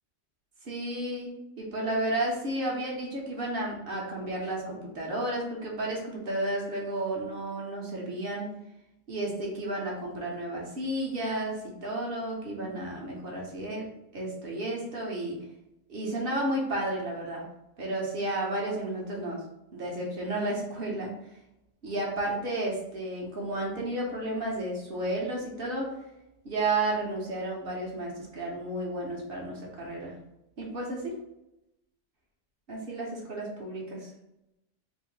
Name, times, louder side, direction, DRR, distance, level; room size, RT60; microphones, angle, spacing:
voice 1, 0.6-8.6 9.1-15.4 15.9-17.4 17.8-19.4 19.7-21.1 21.8-25.9 26.4-30.1 30.6-31.1 32.7-34.1, right 1 dB, 50° right, -2 dB, 1.1 m, -32 dB
3.6 x 2.7 x 3.1 m, 0.88 s
omnidirectional pair, 1.3 m